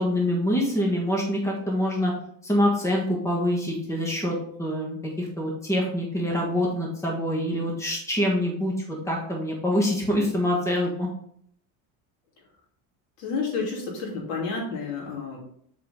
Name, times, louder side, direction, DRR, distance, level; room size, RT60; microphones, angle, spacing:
voice 1, 0.0-2.1 2.4-11.1, left 1 dB, 10° left, -2 dB, 1.4 m, -25 dB
voice 2, 13.2-15.4, left 4 dB, 75° left, -2 dB, 3.1 m, -30 dB
7.7 x 4.9 x 3.6 m, 0.65 s
cardioid pair, 160°, 37 cm